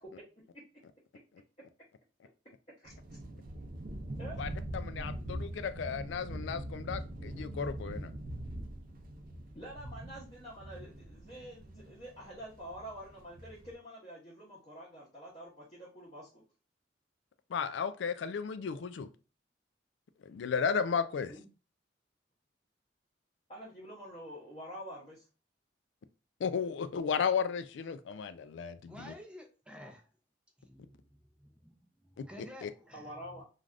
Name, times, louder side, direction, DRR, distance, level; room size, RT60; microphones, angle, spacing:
sound 1, 2.9-13.7, right 1 dB, 55° right, 0.5 m, -42 dB
voice 1, 4.4-8.1 17.5-19.1 20.2-21.3 26.4-29.1 32.2-32.7, left 6 dB, 85° left, 12 dB, 0.3 m, -34 dB
voice 2, 9.5-16.4 21.3-21.5 23.5-25.3 32.9-33.4, equal, 35° left, -7 dB, 0.9 m, -47 dB
voice 3, 28.9-30.1 30.6-33.1, equal, 5° right, 3 dB, 0.5 m, -52 dB
3.3 x 2.4 x 2.4 m, 0.34 s
head